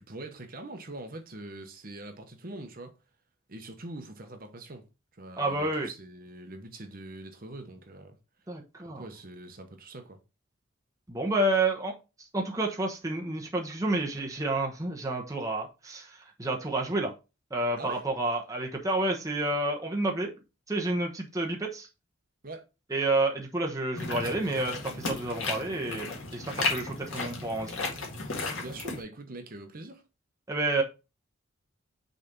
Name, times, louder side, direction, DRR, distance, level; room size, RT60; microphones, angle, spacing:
voice 1, 0.0-2.9 3.5-4.9 5.1-8.2 8.8-10.2 17.8-18.0 22.4-22.6 28.6-30.0, right 2 dB, 45° right, 1.0 m, -43 dB
voice 2, 5.4-5.9 8.5-9.0 11.1-11.9 12.3-17.1 17.5-20.3 20.7-21.9 22.9-27.9 30.5-30.8, right 2 dB, 15° right, 1.0 m, -30 dB
sound 1, 24.0-29.0, left 3 dB, 75° left, 1.9 m, -34 dB
6.3 x 3.4 x 5.3 m
head